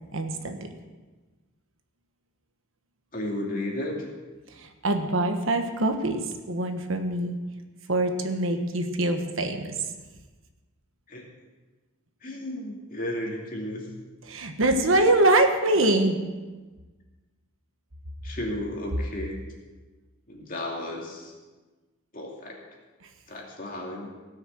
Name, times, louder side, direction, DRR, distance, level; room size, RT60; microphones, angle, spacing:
voice 1, 0.1-0.6 4.5-7.4 7.9-9.9 14.2-16.2 23.0-23.1, right 2 dB, 70° right, 6 dB, 1.3 m, -24 dB
voice 2, 3.1-4.1 11.1-11.3 12.2-13.9 18.2-19.4 20.3-21.3 22.1-22.6 23.3-24.1, left 1 dB, 40° left, -1 dB, 2.6 m, -33 dB
17.5 x 6.5 x 7.7 m, 1.3 s
head